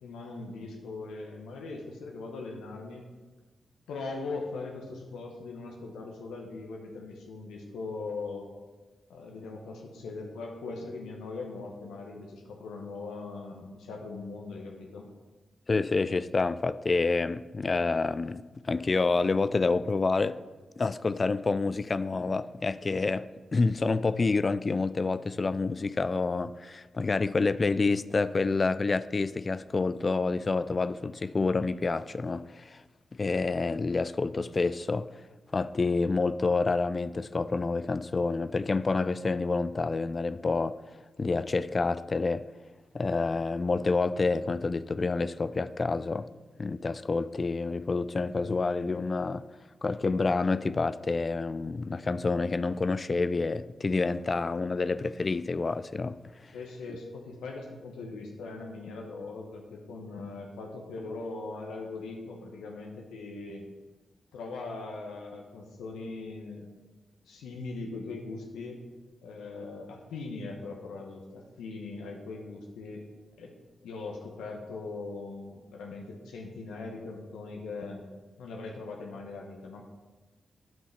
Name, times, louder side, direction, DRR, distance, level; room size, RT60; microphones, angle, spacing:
voice 1, 0.0-3.1 3.9-8.5 9.1-15.1 56.5-63.6 64.3-66.7 67.2-68.8 69.2-73.1 73.4-73.5 73.8-78.0 78.4-79.8, left 3 dB, 85° left, 0.9 m, -40 dB
voice 2, 15.7-20.4 20.8-32.8 33.1-35.1 35.5-40.8 41.2-42.5 42.9-46.3 46.6-49.5 49.8-56.5, left 3 dB, 45° left, 0.4 m, -28 dB
9.1 x 5.5 x 5.8 m
supercardioid pair, 40°, 0 cm